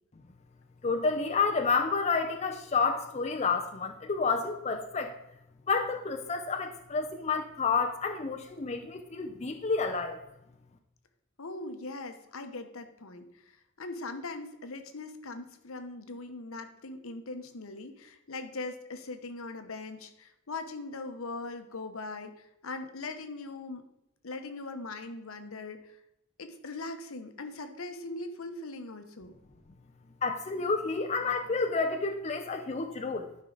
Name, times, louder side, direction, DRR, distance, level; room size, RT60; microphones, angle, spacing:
voice 1, 0.8-5.1 5.7-10.2 30.2-33.3, left 4 dB, 30° left, 4 dB, 0.5 m, -30 dB
voice 2, 11.4-23.8 24.2-26.0 26.4-29.3, left 3 dB, 70° left, 8 dB, 0.9 m, -40 dB
12.0 x 5.5 x 3.9 m, 0.86 s
head